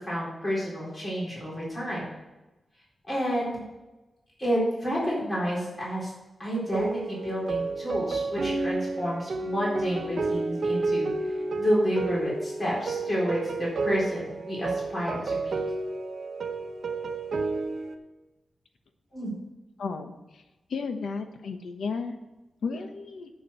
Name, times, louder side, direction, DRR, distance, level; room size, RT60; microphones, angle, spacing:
voice 1, 0.0-2.0 3.1-3.5 4.4-6.1 6.4-15.6 19.1-19.3, equal, 20° left, -6 dB, 3.9 m, -30 dB
sound 1, 6.7-18.0, right 3 dB, 55° right, 0.9 m, -31 dB
voice 2, 19.8-20.1 20.7-22.2 22.6-23.3, left 4 dB, 90° left, 7 dB, 1.0 m, -33 dB
8.2 x 7.1 x 6.5 m, 1.1 s
wide cardioid pair, 170°, 0 cm